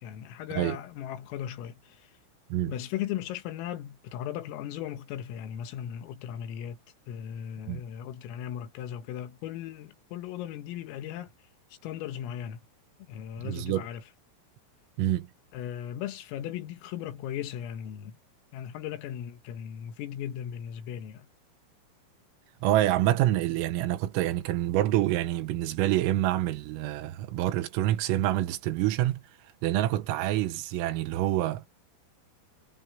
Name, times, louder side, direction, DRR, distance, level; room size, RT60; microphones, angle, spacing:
voice 1, 0.0-2.1 2.7-6.8 7.1-11.3 11.8-12.6 13.1-14.0 15.5-18.2 18.5-21.3, left 10 dB, 80° left, 4.1 m, -37 dB
voice 2, 13.4-13.9 15.0-15.3 22.6-29.2 29.6-31.7, right 14 dB, 85° right, 3.8 m, -27 dB
omnidirectional pair, 5.9 m